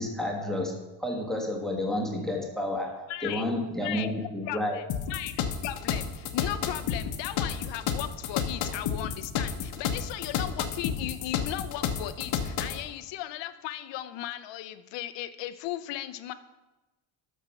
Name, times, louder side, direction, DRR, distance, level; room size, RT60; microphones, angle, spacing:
voice 1, 0.0-4.8, left 1 dB, ahead, 1 dB, 1.3 m, -31 dB
voice 2, 3.1-3.4 3.8-4.1 4.5-16.3, left 13 dB, 70° left, 11 dB, 0.8 m, -37 dB
sound 1, 4.9-12.8, left 8 dB, 85° left, 1.2 m, -31 dB
13.0 x 4.6 x 5.7 m, 1.1 s
cardioid pair, 135°, 45 cm